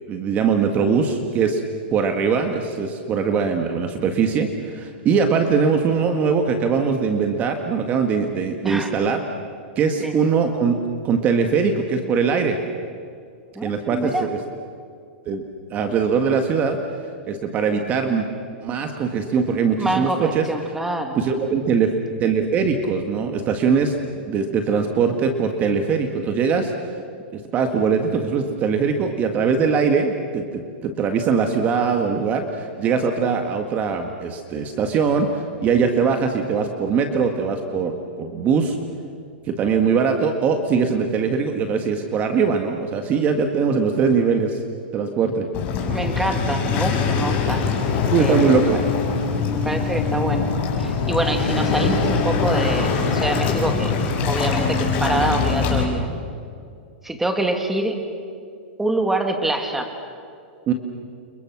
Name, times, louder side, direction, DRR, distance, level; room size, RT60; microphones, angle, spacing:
voice 1, 0.1-1.6 1.9-9.2 9.7-10.8 11.0-12.6 13.6-14.4 15.2-15.4 15.7-16.8 17.3-18.3 18.6-20.5 21.2-23.9 24.3-26.7 27.3-38.8 39.4-44.6 44.9-45.5 48.1-48.8 60.7-60.8, right 5 dB, 25° right, 5 dB, 1.8 m, -21 dB
voice 2, 13.6-14.3 19.8-21.2 45.8-47.6 48.2-48.5 49.5-50.5 50.8-53.9 54.3-56.1 57.0-58.0 58.8-59.9, right 1 dB, 5° right, 4 dB, 2.4 m, -25 dB
Waves surf, 45.5-55.8, left 5 dB, 35° left, 6.2 m, -22 dB
30.0 x 28.0 x 6.1 m, 2.3 s
supercardioid pair, 150°, 6 cm